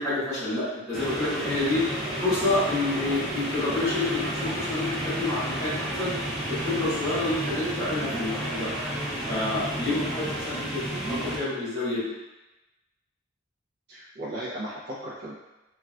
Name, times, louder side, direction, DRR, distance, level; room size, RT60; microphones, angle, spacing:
voice 1, 0.0-1.8 2.2-6.1 6.5-8.7 9.3-10.8 11.1-12.1, left 2 dB, 20° left, -12 dB, 1.5 m, -28 dB
sound 1, 0.9-11.4, right 1 dB, ahead, 0.5 m, -31 dB
voice 2, 13.9-15.3, right 1 dB, 55° right, -9 dB, 0.5 m, -36 dB
3.5 x 2.2 x 2.3 m, 1.1 s
head